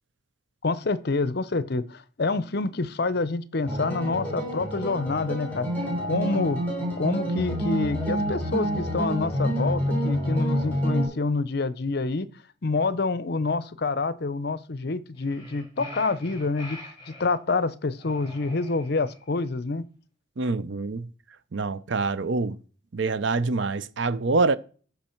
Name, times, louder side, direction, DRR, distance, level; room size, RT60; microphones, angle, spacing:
voice 1, 0.6-5.7 6.0-6.6 7.0-12.3 12.6-16.8 17.1-19.8, left 3 dB, 50° left, 0.6 m, -27 dB
sound 1, 3.7-11.1, equal, 10° left, 4.8 m, -28 dB
sound 2, 15.1-17.3 18.0-19.2, left 1 dB, 25° left, 5.9 m, -43 dB
voice 2, 20.4-21.1 21.5-22.6 22.9-24.6, right 3 dB, 65° right, 0.6 m, -25 dB
14.0 x 5.6 x 4.5 m
head